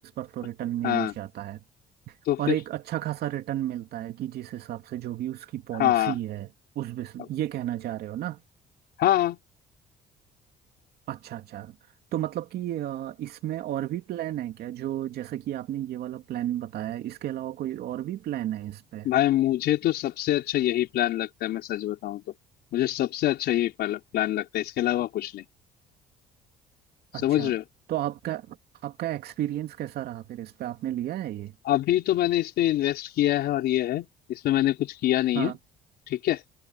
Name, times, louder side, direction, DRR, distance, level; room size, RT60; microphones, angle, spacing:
voice 1, 0.0-1.6 2.1-8.4 11.1-11.8 12.1-19.1 27.1-27.5 27.9-28.6 28.8-31.5 35.3-35.6, right 12 dB, 70° right, 2.6 m, -33 dB
voice 2, 0.8-1.1 2.3-2.5 5.8-6.1 9.0-9.4 19.0-22.2 22.7-25.5 27.2-27.6 31.6-35.5 36.1-36.4, left 13 dB, 75° left, 4.6 m, -25 dB
cardioid pair, 110°, 17 cm